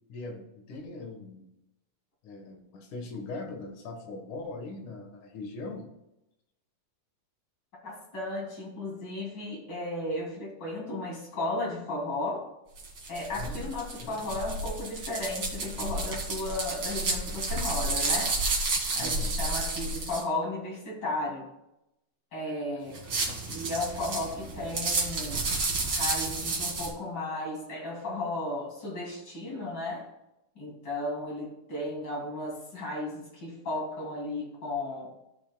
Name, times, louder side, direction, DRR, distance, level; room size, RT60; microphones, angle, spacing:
voice 1, 0.1-1.5 2.2-5.9 13.4-13.7 14.0-14.3 19.0-19.3 23.2-23.7, left 3 dB, 60° left, 3 dB, 2.6 m, -41 dB
voice 2, 7.8-12.5 13.1-18.4 18.9-21.5 22.3-23.0 23.5-30.1 30.6-35.1, left 2 dB, 30° left, -3 dB, 2.8 m, -34 dB
sound 1, 12.8-20.2 22.9-26.9, right 2 dB, 40° right, 2.0 m, -31 dB
15.5 x 6.1 x 2.3 m, 0.89 s
omnidirectional pair, 4.3 m